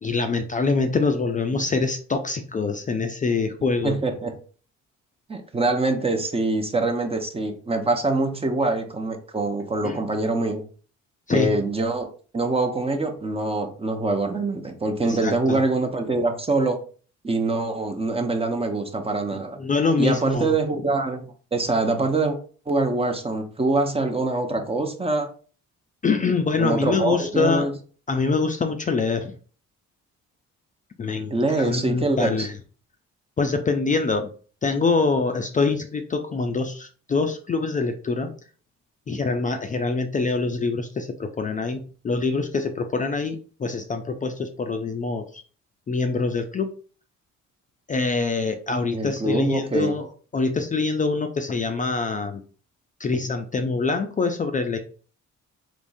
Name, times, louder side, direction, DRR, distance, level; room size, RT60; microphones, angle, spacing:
voice 1, 0.0-4.0 9.8-10.0 11.3-11.6 15.0-15.6 19.3-20.6 26.0-27.7 28.1-29.3 31.0-32.6 33.4-34.3 34.6-38.3 39.1-45.4 45.9-46.7 47.9-52.4 53.0-54.8, left 4 dB, 25° left, 5 dB, 0.4 m, -25 dB
voice 2, 3.8-4.3 5.3-10.6 11.3-12.1 12.3-16.8 17.2-19.6 20.0-22.4 22.7-25.3 26.6-27.7 31.3-32.5 48.9-49.9, right 2 dB, 20° right, 6 dB, 0.6 m, -24 dB
3.5 x 3.1 x 2.6 m, 0.41 s
cardioid pair, 90°, 30 cm